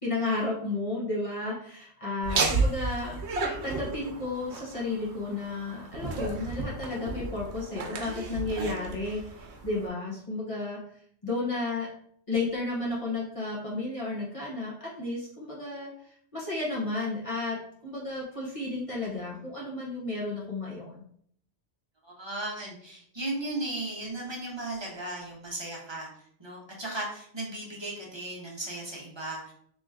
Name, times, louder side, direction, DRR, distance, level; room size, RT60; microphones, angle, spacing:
voice 1, 0.0-10.8 11.2-11.9 12.3-17.5 17.8-21.0, left 2 dB, 35° left, -6 dB, 1.0 m, -33 dB
Laughter, 2.2-9.9, right 3 dB, 85° right, 1.0 m, -33 dB
voice 2, 22.0-26.1 26.4-29.5, right 2 dB, 25° right, -3 dB, 1.0 m, -36 dB
3.2 x 2.9 x 3.5 m, 0.64 s
omnidirectional pair, 1.1 m